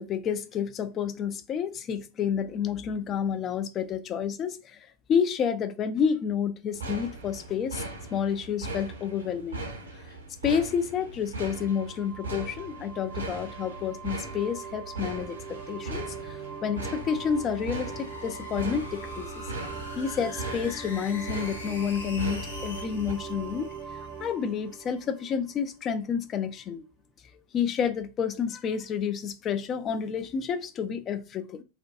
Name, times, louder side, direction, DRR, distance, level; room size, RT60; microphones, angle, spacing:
voice 1, 0.0-7.8 8.1-9.6 10.4-19.5 20.0-23.7 24.2-26.8 27.5-31.6, left 7 dB, 30° left, 0.3 m, -30 dB
sound 1, 6.7-23.1, right 3 dB, 70° right, 0.6 m, -39 dB
sound 2, 11.5-26.0, right 6 dB, 25° right, 0.5 m, -42 dB
sound 3, 16.9-24.3, left 3 dB, 85° left, 0.9 m, -44 dB
2.5 x 2.2 x 2.4 m
figure-of-eight pair, 90°, 0 cm